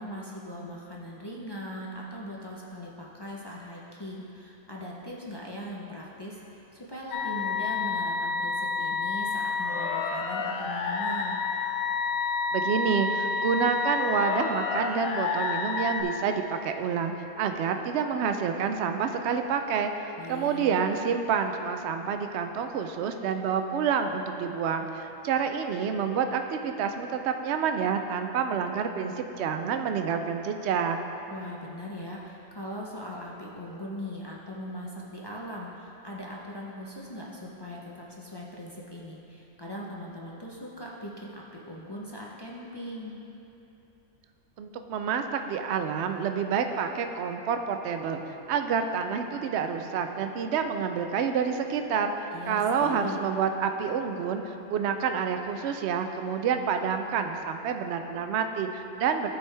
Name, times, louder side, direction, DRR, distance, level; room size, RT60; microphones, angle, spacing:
voice 1, 0.0-11.4 20.2-20.6 31.3-43.2 52.3-53.2, left 1 dB, 40° left, -5 dB, 0.3 m, -40 dB
sound 1, 7.1-16.0, left 4 dB, 75° left, 1.0 m, -29 dB
voice 2, 12.5-19.9 20.3-31.0 44.6-48.2 48.5-52.1 52.5-59.3, right 6 dB, 65° right, 6 dB, 0.7 m, -28 dB
13.5 x 4.8 x 3.3 m, 2.9 s
omnidirectional pair, 1.5 m